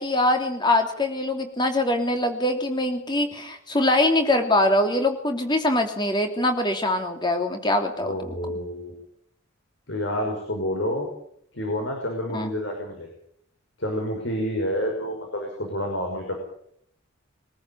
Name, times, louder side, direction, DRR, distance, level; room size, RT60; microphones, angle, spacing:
voice 1, 0.0-8.2 12.3-12.5, left 1 dB, 20° left, 5 dB, 3.0 m, -23 dB
voice 2, 8.0-8.9 9.9-11.1 11.5-13.1 13.8-16.4, equal, 65° left, 1 dB, 5.9 m, -28 dB
23.0 x 14.0 x 8.7 m, 0.67 s
head